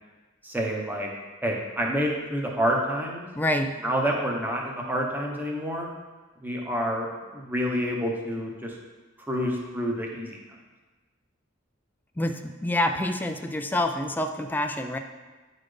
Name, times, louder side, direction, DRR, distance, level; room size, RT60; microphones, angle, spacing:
voice 1, 0.4-1.1 1.4-3.3 3.8-5.9 6.4-8.8 9.3-10.4, equal, 10° right, -1 dB, 0.9 m, -28 dB
voice 2, 3.4-3.7 12.2-12.3 12.6-15.0, left 1 dB, 10° left, 5 dB, 0.3 m, -26 dB
9.7 x 4.1 x 3.3 m, 1.2 s
head